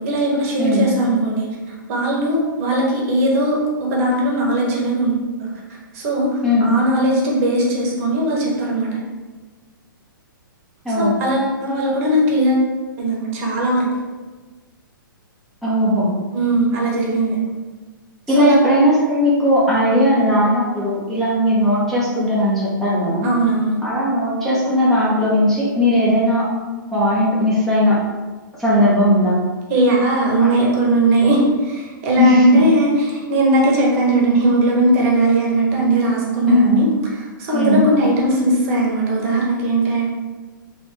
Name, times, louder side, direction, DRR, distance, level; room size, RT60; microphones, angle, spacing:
voice 1, 0.0-1.5 1.9-5.1 5.4-5.5 5.9-9.0 11.0-12.7 13.0-13.9 16.3-17.4 18.3-18.6 23.2-23.8 29.7-36.9 37.1-40.1, right 1 dB, 40° right, -3 dB, 1.1 m, -18 dB
voice 2, 0.6-0.9 6.4-6.7 10.8-11.2 15.6-16.1 18.3-23.3 23.8-26.5 26.9-28.0 28.6-29.4 30.4-30.6 32.2-32.6 36.5-36.8 37.5-37.9, left 1 dB, ahead, -9 dB, 0.9 m, -17 dB
3.3 x 3.0 x 3.2 m, 1.3 s
figure-of-eight pair, 115°, 11 cm